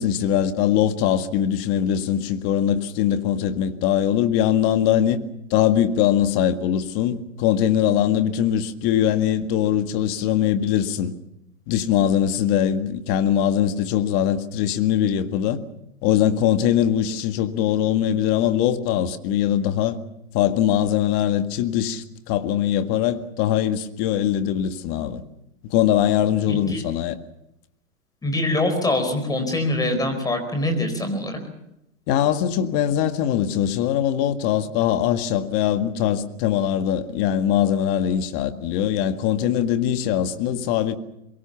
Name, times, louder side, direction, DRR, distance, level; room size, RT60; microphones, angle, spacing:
voice 1, 0.0-5.2 5.5-11.1 11.7-15.6 16.0-20.0 20.3-25.2 25.7-27.2 32.1-40.9, left 10 dB, 35° left, 1.8 m, -21 dB
voice 2, 26.5-26.9 28.2-31.4, left 1 dB, 10° left, 4.5 m, -24 dB
24.0 x 22.5 x 7.1 m
hypercardioid pair, 145°, 42 cm